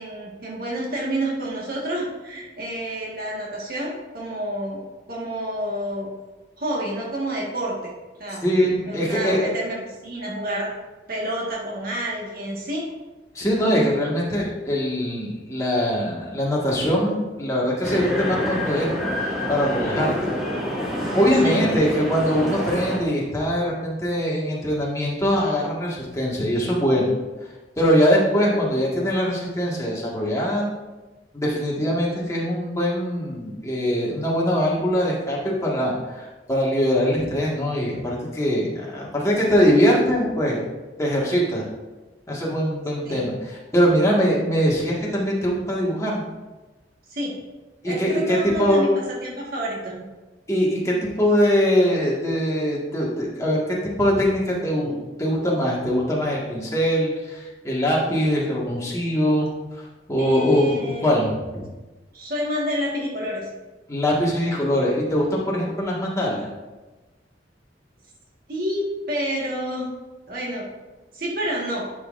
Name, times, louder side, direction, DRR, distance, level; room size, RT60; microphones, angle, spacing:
voice 1, 0.0-4.8 5.1-6.1 6.6-7.9 8.2-8.4 8.8-9.8 10.0-10.7 11.1-12.9 21.4-21.6 43.0-43.3 47.1-47.4 47.8-48.9 49.2-50.0 60.2-61.2 62.1-63.4 68.5-69.9 70.3-70.6 71.1-71.9, right 1 dB, 55° right, -4 dB, 1.7 m, -29 dB
voice 2, 8.4-9.5 13.3-18.9 19.5-20.3 21.1-27.1 27.8-30.7 31.3-40.6 41.0-41.6 42.3-46.2 47.8-48.8 50.5-53.6 54.0-59.5 60.1-61.6 63.9-66.5, equal, 15° left, -5 dB, 1.7 m, -22 dB
sound 1, 17.8-23.0, left 1 dB, ahead, 2.0 m, -27 dB
11.0 x 6.0 x 2.6 m, 1.2 s
head